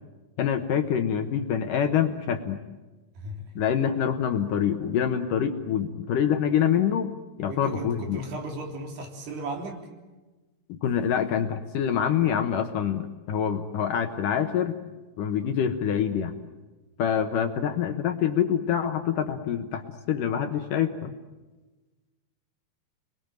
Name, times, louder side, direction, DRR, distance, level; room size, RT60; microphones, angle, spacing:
voice 1, 0.4-2.6 3.6-7.1 7.4-8.2 10.7-14.8 15.2-16.4 17.0-21.1, left 8 dB, 65° left, 7 dB, 2.4 m, -26 dB
voice 2, 3.2-3.5 7.5-9.8, right 2 dB, 75° right, 2 dB, 5.6 m, -36 dB
30.0 x 21.5 x 9.1 m, 1.2 s
omnidirectional pair, 4.8 m